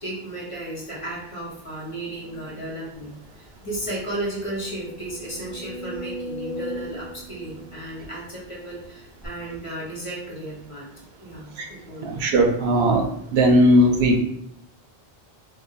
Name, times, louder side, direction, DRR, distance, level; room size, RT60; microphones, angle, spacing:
voice 1, 0.0-10.8 11.2-12.2, right 1 dB, 35° left, -6 dB, 1.0 m, -34 dB
sound 1, 3.2-3.3 3.7-3.8 4.3-8.6 9.2-9.3, equal, 15° left, 1.4 m, -37 dB
voice 2, 12.0-13.1 13.3-14.2, equal, 80° right, 3 dB, 0.8 m, -18 dB
2.6 x 2.6 x 3.9 m, 0.72 s
omnidirectional pair, 1.1 m